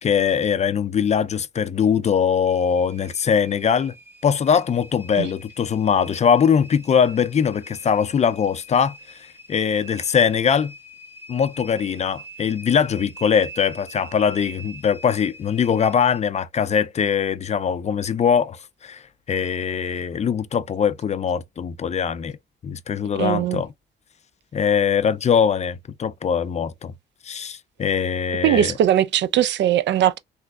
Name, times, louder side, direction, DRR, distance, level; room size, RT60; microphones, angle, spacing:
voice 1, 0.0-3.9 4.2-10.7 11.3-22.4 22.6-23.7 24.5-26.9 27.2-28.7, left 7 dB, 35° left, 0.4 m, -21 dB
sound 1, 2.5-16.2, right 1 dB, 10° right, 0.8 m, -44 dB
voice 2, 23.2-23.6 28.4-30.2, right 11 dB, 65° right, 0.4 m, -20 dB
3.4 x 3.1 x 2.2 m
cardioid pair, 90°, 20 cm